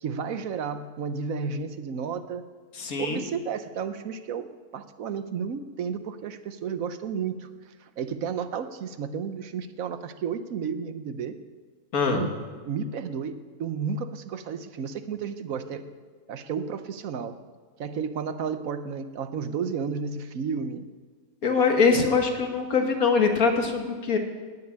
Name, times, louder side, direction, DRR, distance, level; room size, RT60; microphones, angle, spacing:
voice 1, 0.0-2.4 3.0-7.5 8.0-11.4 12.1-15.8 16.3-17.4 17.8-20.9 21.8-22.0, right 6 dB, 75° right, 11 dB, 1.2 m, -32 dB
voice 2, 2.8-3.2 11.9-12.2 21.4-24.2, left 5 dB, 80° left, 4 dB, 2.0 m, -23 dB
17.0 x 6.8 x 9.9 m, 1.5 s
omnidirectional pair, 1.5 m